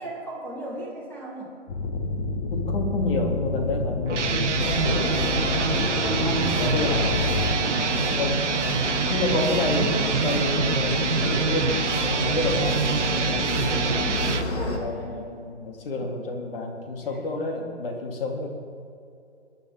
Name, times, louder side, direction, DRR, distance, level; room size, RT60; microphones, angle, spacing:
voice 1, 0.0-1.5 9.5-10.2 13.7-14.2 14.5-15.3 16.0-16.1, right 1 dB, 5° left, -3 dB, 1.7 m, -36 dB
sound 1, 1.7-7.5, left 3 dB, 35° left, 1.5 m, -29 dB
voice 2, 2.5-5.4 6.2-7.3 7.6-8.4 9.1-12.8 13.1-13.5 14.6-18.5, left 2 dB, 50° left, 2 dB, 2.6 m, -29 dB
sound 2, 4.1-14.4, right 6 dB, 80° right, 0.8 m, -26 dB
sound 3, 4.6-14.8, left 2 dB, 70° left, 2.4 m, -29 dB
21.5 x 11.0 x 3.6 m, 2.5 s
figure-of-eight pair, 135°, 35 cm